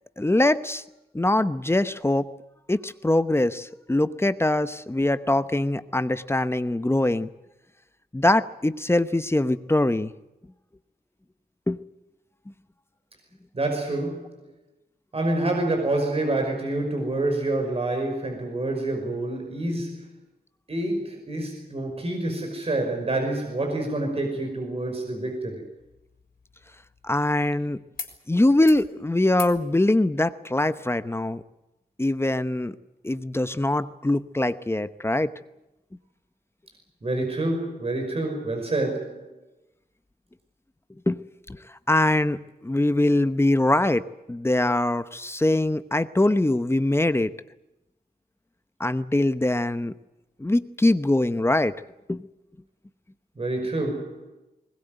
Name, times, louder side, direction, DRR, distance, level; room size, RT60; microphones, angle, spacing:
voice 1, 0.2-0.8 1.1-2.3 2.7-7.3 8.1-10.1 11.7-11.8 27.0-27.8 28.3-31.4 32.0-32.8 33.0-35.3 41.1-41.2 41.5-41.6 41.9-47.3 48.8-49.9 50.4-51.7 52.1-52.2, left 1 dB, 15° left, 12 dB, 0.9 m, -23 dB
voice 2, 13.5-14.5 15.1-20.2 20.7-25.6 37.0-39.3 53.4-54.3, right 2 dB, 40° right, 2 dB, 5.5 m, -27 dB
sound 1, 25.8-27.6 27.9-28.2 28.5-28.9 29.3-29.6 30.9-31.0, left 5 dB, 65° left, 3.8 m, -42 dB
21.5 x 20.0 x 9.2 m, 0.92 s
wide cardioid pair, 125°, 16 cm